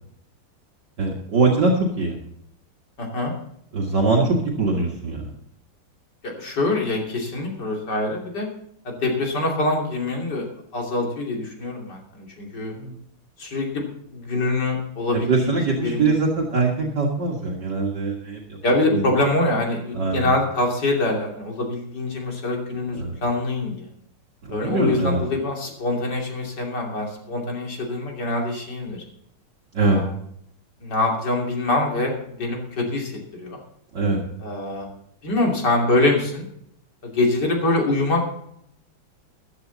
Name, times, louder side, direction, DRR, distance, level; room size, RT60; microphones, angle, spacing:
voice 1, 1.0-2.2 3.7-5.3 12.8-13.0 15.1-18.6 18.9-19.1 19.9-20.3 22.9-23.2 24.5-25.2 29.7-30.0 33.9-34.2, right 3 dB, 55° right, -2 dB, 2.4 m, -22 dB
voice 2, 3.0-3.3 6.2-8.5 8.8-10.4 10.7-12.7 13.4-16.1 18.6-23.9 24.5-29.0 29.8-30.1 30.8-33.6 34.4-34.9 35.2-36.5 37.0-38.3, left 2 dB, 50° left, 0 dB, 3.4 m, -24 dB
14.5 x 11.5 x 4.0 m, 0.70 s
omnidirectional pair, 2.4 m